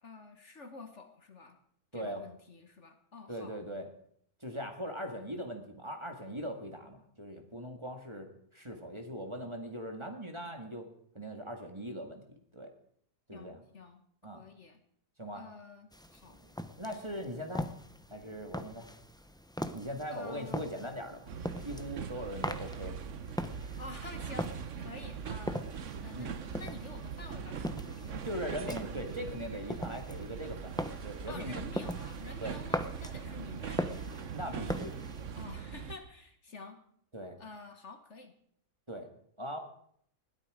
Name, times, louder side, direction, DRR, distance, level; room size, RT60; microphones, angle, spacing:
voice 1, 0.0-1.6 1.9-3.6 13.3-14.8 15.3-16.4 20.1-20.7 23.8-25.7 26.0-28.4 31.3-34.3 35.3-36.8 37.4-38.3, left 3 dB, 50° left, 7 dB, 1.6 m, -49 dB
voice 2, 1.9-2.2 3.3-3.9 4.4-10.9 11.1-12.2 12.5-12.7 13.3-13.6 14.2-14.4 15.2-15.4 16.3-16.5 16.8-17.7 18.1-18.9 19.7-21.3 21.6-23.0 26.1-26.3 28.2-31.6 32.4-32.6 34.3-35.0 37.1-37.4 38.9-39.1 39.4-39.6, equal, 20° right, 4 dB, 1.9 m, -40 dB
sound 1, 15.9-35.5, equal, 5° left, 0.6 m, -41 dB
sound 2, 21.3-36.0, right 7 dB, 55° right, 1.2 m, -41 dB
20.0 x 13.5 x 5.0 m, 0.67 s
omnidirectional pair, 1.6 m